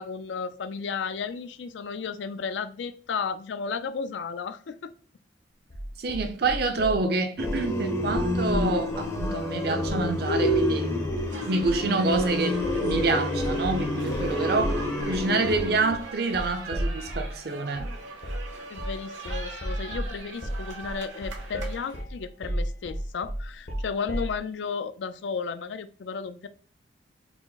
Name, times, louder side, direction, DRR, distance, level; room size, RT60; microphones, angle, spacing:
voice 1, 0.0-4.9 18.7-26.5, left 5 dB, 75° left, 0.4 m, -33 dB
sound 1, 5.7-7.0 7.4-7.7 8.0-9.4 9.8-10.1 10.4-10.7 11.0-11.3 11.6-11.9 12.1-17.4 17.8-18.0 18.2-18.5 18.8-19.0 19.3-24.4, equal, 50° left, 0.7 m, -33 dB
voice 2, 6.0-10.9 11.5-17.9, right 3 dB, 55° right, 0.6 m, -27 dB
sound 2, 7.4-15.9, left 1 dB, 15° left, 0.5 m, -28 dB
sound 3, 11.3-22.0, right 2 dB, 90° right, 1.1 m, -42 dB
4.6 x 2.0 x 3.9 m
head